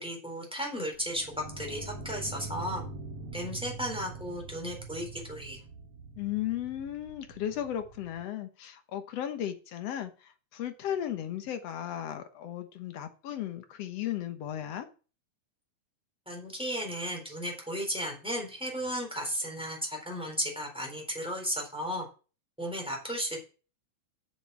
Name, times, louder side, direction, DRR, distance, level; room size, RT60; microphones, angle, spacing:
voice 1, 0.0-2.8 3.3-5.6 16.3-22.1 22.6-23.4, equal, ahead, 3.7 m, -34 dB
sound 1, 1.0-8.2, right 3 dB, 80° right, 3.4 m, -43 dB
voice 2, 6.2-14.9, left 11 dB, 60° left, 2.1 m, -35 dB
7.9 x 7.0 x 7.4 m
omnidirectional pair, 3.4 m